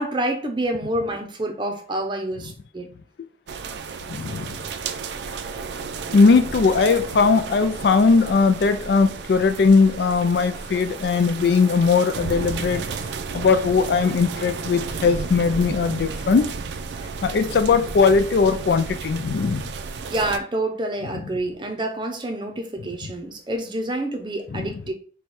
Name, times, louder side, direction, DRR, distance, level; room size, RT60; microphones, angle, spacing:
voice 1, 0.0-2.9 20.1-24.9, right 1 dB, 25° right, 0.6 m, -27 dB
sound 1, 3.5-20.4, right 4 dB, 80° right, 0.4 m, -33 dB
voice 2, 4.1-4.5 6.1-12.8 13.3-16.4 17.2-19.7 24.5-24.8, left 4 dB, 70° left, 0.4 m, -19 dB
4.3 x 2.3 x 4.6 m
head